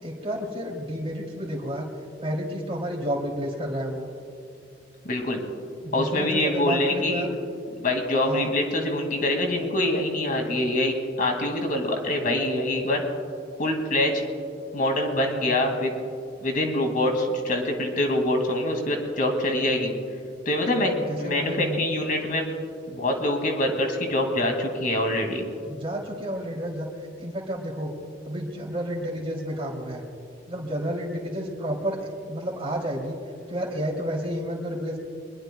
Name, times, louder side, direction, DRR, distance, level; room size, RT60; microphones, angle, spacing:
voice 1, 0.0-1.9 2.2-4.1 5.8-7.4 8.2-8.5 21.1-21.8 25.6-26.9 27.2-27.9 28.2-30.0 30.5-33.2 33.5-35.0, equal, 30° right, 0 dB, 2.9 m, -30 dB
voice 2, 5.0-5.4 5.9-7.3 7.8-13.0 13.6-14.2 14.7-15.9 16.4-19.9 20.5-22.5 22.9-25.5, left 1 dB, 50° left, 3 dB, 2.2 m, -25 dB
23.5 x 22.0 x 2.3 m, 2.4 s
head